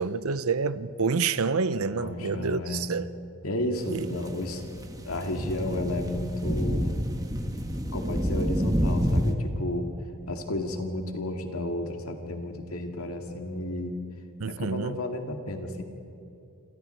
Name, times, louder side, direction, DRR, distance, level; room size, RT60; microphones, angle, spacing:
voice 1, 0.0-3.1 3.9-4.1 14.4-15.0, right 4 dB, 85° right, 0.7 m, -28 dB
voice 2, 1.9-2.9 3.4-4.6 5.0-6.9 7.9-9.9 10.3-14.0 14.5-15.8, left 1 dB, 85° left, 2.2 m, -32 dB
sound 1, 3.8-9.3, equal, 15° right, 1.4 m, -28 dB
27.0 x 26.5 x 4.6 m
head